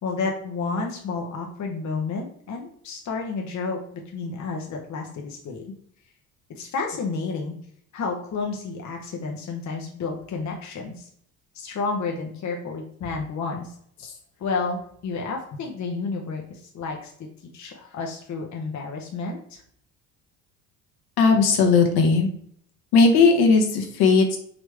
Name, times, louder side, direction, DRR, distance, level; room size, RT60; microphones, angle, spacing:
voice 1, 0.0-5.7 6.5-7.5 7.9-11.1 11.5-17.3 17.5-19.6, left 4 dB, 40° left, 1 dB, 1.0 m, -31 dB
voice 2, 21.2-22.3 22.9-24.4, left 4 dB, 60° left, 2 dB, 1.2 m, -17 dB
5.1 x 3.0 x 3.4 m, 0.63 s
hypercardioid pair, 60°, 43 cm